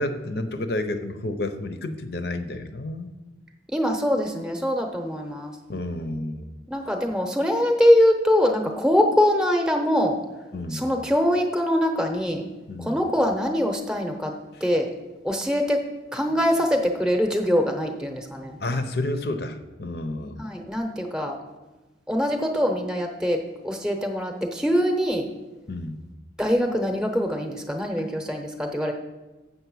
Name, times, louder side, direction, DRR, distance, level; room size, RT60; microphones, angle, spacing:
voice 1, 0.0-3.1 5.7-6.5 10.5-10.8 12.7-13.0 18.6-20.5 25.7-26.0, left 1 dB, 55° left, 9 dB, 0.7 m, -30 dB
voice 2, 3.7-5.5 6.7-10.2 10.7-12.4 12.8-14.3 14.6-14.9 15.2-15.8 16.1-18.6 20.4-21.4 22.1-25.3 26.4-28.9, equal, 5° right, 3 dB, 0.8 m, -23 dB
7.5 x 6.8 x 6.2 m, 1.1 s
head